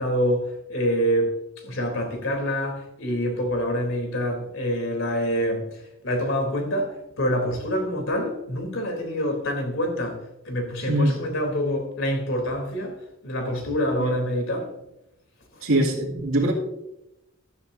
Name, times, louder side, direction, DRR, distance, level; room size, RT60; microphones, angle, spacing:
voice 1, 0.0-5.7 6.0-10.2 10.4-13.0 13.2-14.7, equal, 65° left, 3.4 m, -26 dB
voice 2, 15.6-16.5, right 1 dB, 80° right, 2.4 m, -22 dB
14.5 x 13.0 x 2.7 m
head